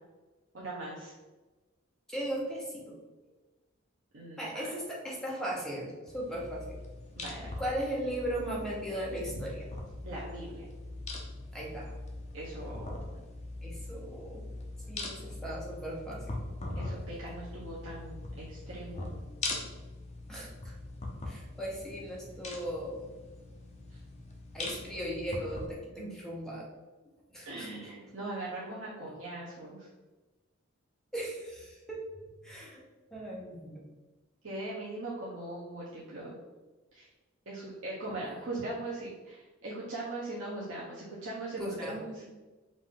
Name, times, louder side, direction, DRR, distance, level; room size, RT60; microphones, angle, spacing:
voice 1, 0.5-1.1 4.1-4.6 7.2-7.5 9.3-9.4 10.0-10.6 12.3-13.0 16.8-19.2 26.0-26.1 27.5-29.9 34.4-36.4 36.9-37.1 37.5-42.0, right 2 dB, 65° right, -6 dB, 0.8 m, -40 dB
voice 2, 2.1-2.9 4.4-6.7 7.6-9.7 11.5-12.0 13.6-14.4 14.9-16.4 20.3-20.7 21.3-23.1 24.5-26.7 27.3-27.7 31.1-32.0 32.4-32.8 33.1-33.8 38.1-38.2 41.6-42.3, right 1 dB, 5° left, -4 dB, 0.9 m, -37 dB
sound 1, 6.1-25.7, left 2 dB, 35° left, 0.7 m, -42 dB
5.3 x 2.6 x 3.7 m, 1.2 s
head